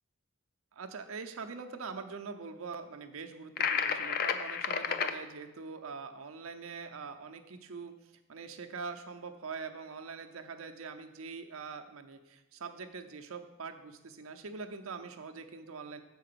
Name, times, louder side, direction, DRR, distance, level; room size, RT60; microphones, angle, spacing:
voice 1, 0.7-7.9 8.3-16.0, right 5 dB, 85° right, 6 dB, 0.7 m, -43 dB
sound 1, 3.6-5.1, left 7 dB, 50° left, 0.5 m, -31 dB
6.5 x 4.6 x 6.7 m, 1.0 s
head